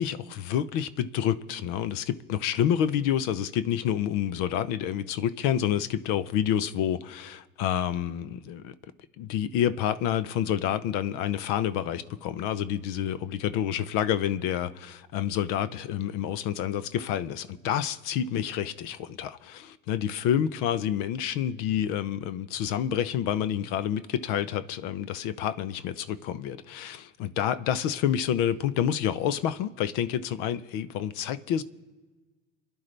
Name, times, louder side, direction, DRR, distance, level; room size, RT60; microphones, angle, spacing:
voice 1, 0.0-8.7 9.2-31.6, left 10 dB, 70° left, 0.8 m, -28 dB
29.0 x 10.5 x 3.3 m
supercardioid pair, 85°, 34 cm